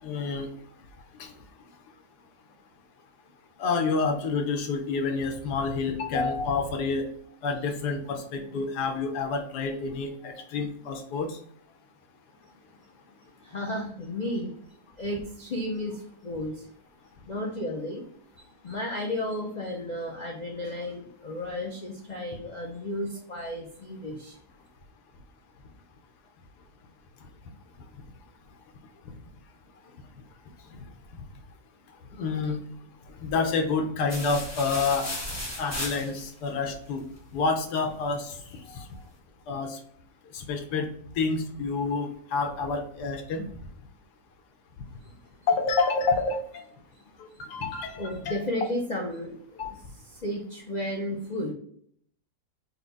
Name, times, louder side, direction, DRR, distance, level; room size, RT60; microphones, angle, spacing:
voice 1, 0.0-0.5 1.2-1.3 3.6-7.1 7.4-11.4 32.2-32.6 33.2-35.1 35.6-37.0 37.3-38.8 39.5-39.8 40.3-40.9 41.2-43.4 45.5-46.6 47.2-48.4 49.6-49.7, left 4 dB, 90° left, 4 dB, 1.3 m, -28 dB
voice 2, 13.4-16.7 17.3-18.1 18.4-24.4 45.0-45.2 47.3-47.4 48.0-51.5, left 1 dB, 75° left, -2 dB, 0.4 m, -33 dB
sound 1, 34.1-36.5, left 1 dB, 15° left, 0.7 m, -35 dB
4.2 x 2.3 x 3.8 m, 0.63 s
omnidirectional pair, 1.7 m